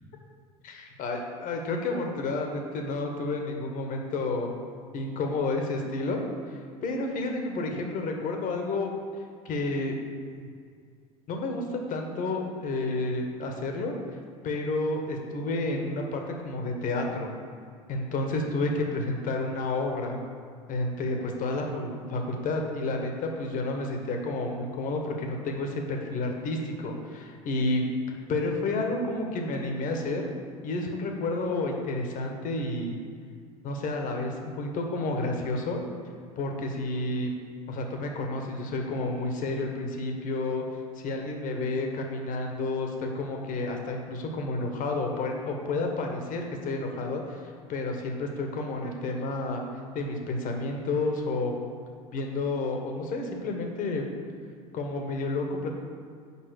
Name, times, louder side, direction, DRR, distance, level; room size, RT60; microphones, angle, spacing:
voice 1, 0.6-4.5 4.9-8.9 9.4-10.0 10.4-10.5 11.3-13.9 14.4-17.3 17.9-20.2 20.7-27.8 28.3-30.3 30.6-32.9 33.6-35.8 36.4-37.3 37.7-40.6 40.9-49.6 49.9-51.5 52.1-54.0 54.7-55.7, left 2 dB, 45° left, 3 dB, 1.3 m, -30 dB
5.7 x 5.3 x 6.5 m, 2.2 s
hypercardioid pair, 75°, 19 cm